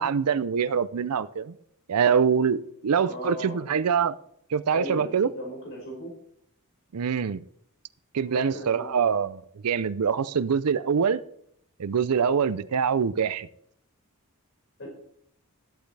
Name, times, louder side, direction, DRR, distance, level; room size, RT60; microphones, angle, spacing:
voice 1, 0.0-1.5 1.9-4.2 4.5-5.3 6.9-7.4 8.1-11.2 11.8-13.5, right 6 dB, 90° right, 16 dB, 0.5 m, -24 dB
voice 2, 3.0-3.6 4.7-6.1 8.2-9.1 14.8-14.9, equal, 55° left, -3 dB, 5.3 m, -37 dB
13.5 x 11.5 x 3.3 m, 0.69 s
head